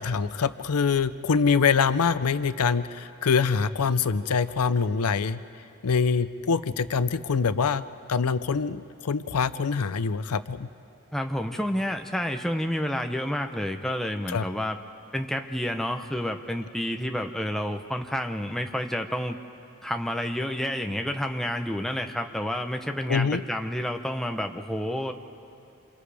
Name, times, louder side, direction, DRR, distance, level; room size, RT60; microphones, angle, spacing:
voice 1, 0.0-5.4 5.8-7.8 8.1-10.7 14.3-14.5 23.1-23.4, left 5 dB, 90° left, 13 dB, 0.6 m, -24 dB
voice 2, 11.1-14.8 15.1-19.4 19.8-25.1, equal, ahead, 4 dB, 0.7 m, -29 dB
28.0 x 27.5 x 3.4 m, 2.6 s
head